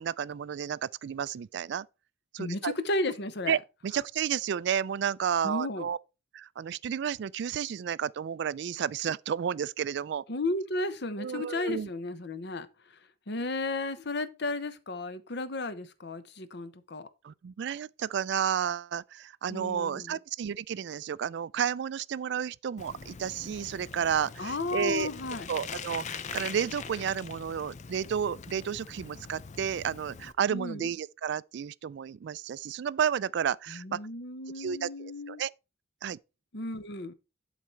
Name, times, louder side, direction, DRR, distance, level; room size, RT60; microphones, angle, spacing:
voice 1, 0.0-1.9 2.3-2.7 3.5-3.6 3.8-6.0 6.3-10.2 11.2-11.9 17.2-25.1 25.5-34.0 34.6-35.5 36.0-36.2, right 8 dB, 65° right, 0.3 m, -32 dB
voice 2, 2.4-3.6 5.4-5.9 10.3-12.7 13.3-17.1 19.5-20.1 24.4-25.5 30.5-30.9 33.7-35.4 36.5-37.1, left 2 dB, 60° left, 1.0 m, -34 dB
Bicycle, 22.8-30.3, left 6 dB, 40° left, 0.5 m, -42 dB
11.5 x 4.2 x 4.6 m
head